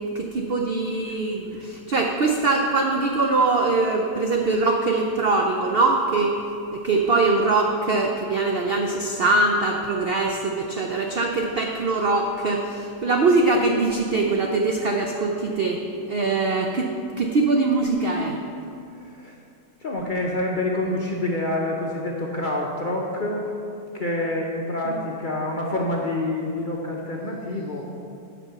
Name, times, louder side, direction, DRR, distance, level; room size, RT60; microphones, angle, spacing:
voice 1, 0.1-6.3 6.7-15.8 16.1-18.4 24.8-25.0, right 3 dB, 80° right, 2 dB, 0.5 m, -22 dB
voice 2, 19.0-19.3 19.8-23.5 23.9-27.8, left 1 dB, 50° left, -2 dB, 0.6 m, -27 dB
8.5 x 5.3 x 6.7 m, 2.5 s
omnidirectional pair, 1.8 m